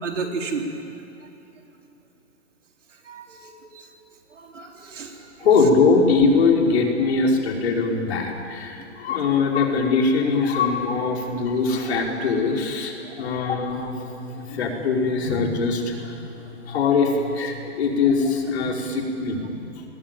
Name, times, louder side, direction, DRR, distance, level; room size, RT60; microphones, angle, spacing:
voice 1, 0.0-0.7 3.0-3.9 4.3-5.3 13.0-13.3, right 4 dB, 75° right, 2 dB, 4.3 m, -33 dB
voice 2, 5.4-13.9 14.4-16.2 16.7-19.6, left 4 dB, 55° left, 1 dB, 5.0 m, -22 dB
sound 1, 13.7-19.2, left 6 dB, 85° left, 7.8 m, -43 dB
27.5 x 20.5 x 9.2 m, 3.0 s
hypercardioid pair, 155°, 37 cm